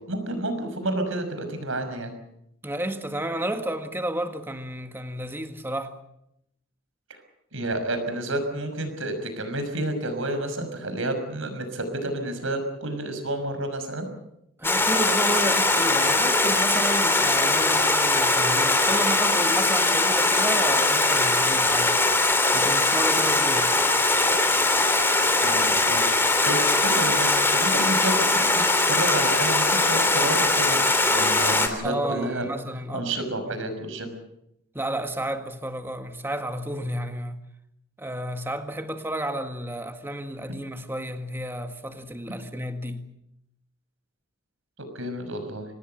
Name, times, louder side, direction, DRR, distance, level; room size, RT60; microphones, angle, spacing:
voice 1, 0.1-2.1 7.5-14.1 25.4-30.8 31.1-32.4 32.9-34.1 44.9-45.7, right 1 dB, 65° right, 6.0 m, -30 dB
voice 2, 2.6-6.0 14.6-22.0 22.5-23.7 31.8-33.6 34.7-37.4 38.0-43.1, right 1 dB, 10° right, 1.7 m, -32 dB
Stream, 14.6-31.7, left 2 dB, 10° left, 3.0 m, -21 dB
25.5 x 19.5 x 8.0 m
head